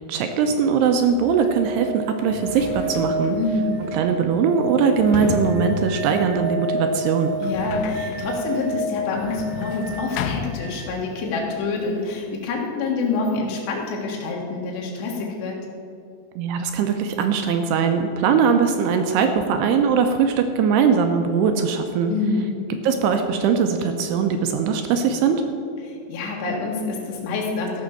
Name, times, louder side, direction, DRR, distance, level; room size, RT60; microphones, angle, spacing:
voice 1, 0.0-3.4 3.9-7.3 16.4-22.1 22.8-25.4, right 6 dB, 80° right, 6 dB, 2.4 m, -21 dB
sound 1, 1.1-10.9 13.2-13.3, right 1 dB, 60° right, 1.7 m, -30 dB
Sliding door, 1.4-1.5 2.1-11.3 11.5-12.4, left 7 dB, 90° left, 2.3 m, -34 dB
voice 2, 3.3-3.8 7.4-15.6 22.1-22.6 25.8-27.8, left 3 dB, 70° left, -2 dB, 3.6 m, -27 dB
14.0 x 6.2 x 7.1 m, 2.6 s
omnidirectional pair, 5.3 m